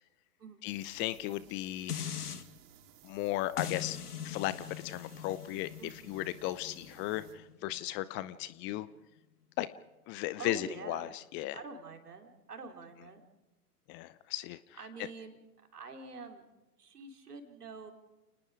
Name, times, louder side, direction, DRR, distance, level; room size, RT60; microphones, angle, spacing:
voice 1, 0.6-2.0 3.0-4.0 4.2-5.7 6.1-8.9 9.6-9.7 10.1-11.6 13.9-14.6, left 15 dB, 25° left, 17 dB, 0.7 m, -36 dB
sound 1, 0.6-7.4, right 9 dB, 35° right, 3.3 m, -59 dB
sound 2, 1.9-2.4 3.6-8.7 9.2-9.3, left 8 dB, 75° left, 1.8 m, -42 dB
voice 2, 10.4-11.1 11.5-13.2 14.8-15.4 15.7-16.4 16.8-17.9, right 4 dB, 75° right, 5 dB, 3.9 m, -46 dB
30.0 x 19.5 x 5.0 m, 1.0 s
figure-of-eight pair, 105°, 47 cm